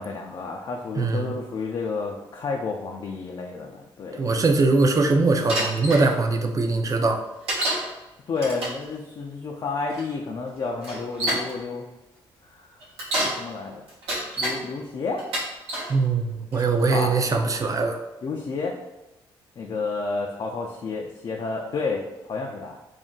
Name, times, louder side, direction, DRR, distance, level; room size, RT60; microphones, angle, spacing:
voice 1, 0.0-4.3 8.3-11.8 12.5-12.7 13.2-13.8 14.4-15.2 16.9-17.1 18.2-18.8 19.6-22.8, left 4 dB, 50° left, 0 dB, 0.4 m, -30 dB
voice 2, 1.0-1.3 4.2-7.2 15.9-18.0, right 3 dB, 35° right, 4 dB, 0.5 m, -21 dB
Bicycle, 5.5-6.0 7.5-7.9 8.4-8.8 9.9-10.0 10.8-11.5 12.8-13.4 13.9-14.6 15.2-15.9 16.5-16.9, right 1 dB, 85° right, 1.0 m, -27 dB
2.5 x 2.2 x 3.6 m, 1.0 s
supercardioid pair, 65°, 10 cm